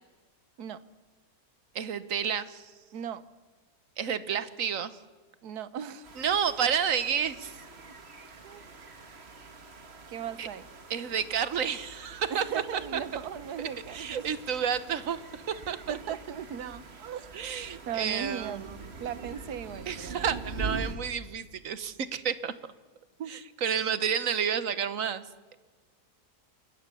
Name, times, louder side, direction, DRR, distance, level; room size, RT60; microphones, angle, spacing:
voice 1, 1.7-2.7 4.0-4.9 6.2-7.5 10.4-10.5 10.9-12.4 13.9-16.0 17.3-18.8 19.9-22.5 23.3-25.2, right 7 dB, 60° right, 14 dB, 1.4 m, -30 dB
voice 2, 2.9-3.2 5.4-6.1 8.4-8.7 10.1-10.7 12.3-14.3 15.9-17.3 17.9-20.3 23.2-23.4, right 8 dB, 75° right, 15 dB, 1.5 m, -38 dB
sound 1, 6.0-21.0, right 3 dB, 40° right, 1.8 m, -44 dB
29.0 x 21.5 x 7.0 m, 1.4 s
omnidirectional pair, 1.7 m